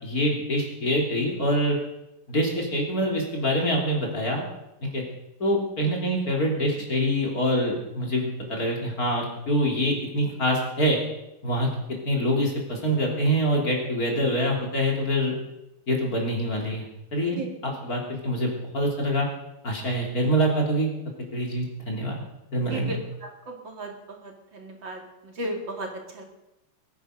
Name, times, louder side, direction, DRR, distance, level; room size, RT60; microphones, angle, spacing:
voice 1, 0.0-1.8 2.3-4.4 4.8-5.0 5.4-11.0 11.4-11.7 12.1-15.4 15.9-16.8 17.1-19.3 19.6-20.9 21.3-22.2 22.5-23.0, equal, 40° left, 0 dB, 3.8 m, -25 dB
voice 2, 22.7-23.9 24.2-26.2, right 1 dB, 60° right, 2 dB, 3.1 m, -35 dB
21.0 x 9.8 x 6.5 m, 0.92 s
omnidirectional pair, 2.4 m